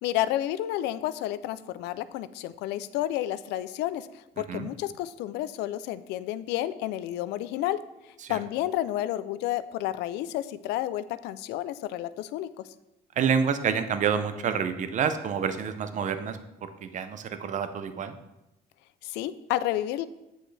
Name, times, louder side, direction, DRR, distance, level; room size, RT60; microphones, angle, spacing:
voice 1, 0.0-7.8 8.3-12.5 19.0-20.1, left 13 dB, 90° left, 15 dB, 0.4 m, -31 dB
voice 2, 13.2-16.4 16.8-18.2, right 7 dB, 45° right, 10 dB, 0.6 m, -28 dB
7.9 x 6.2 x 3.3 m, 0.92 s
cardioid pair, 110°, 17 cm